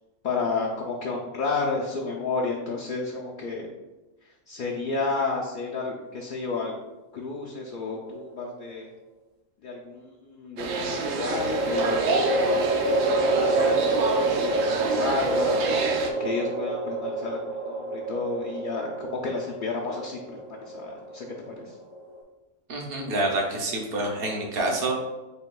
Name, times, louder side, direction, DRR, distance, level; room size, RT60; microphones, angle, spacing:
voice 1, 0.2-3.7 4.5-6.8 7.1-8.9 9.6-15.6 15.9-21.8, left 4 dB, 60° left, -2 dB, 0.5 m, -31 dB
sound 1, 7.8-8.6 10.9-22.2, right 2 dB, 30° right, 0.5 m, -28 dB
sound 2, 10.6-16.1, right 4 dB, 90° right, 1.0 m, -28 dB
voice 2, 22.7-24.9, right 2 dB, 55° right, -1 dB, 0.9 m, -27 dB
6.6 x 2.3 x 2.2 m, 1.1 s
omnidirectional pair, 1.3 m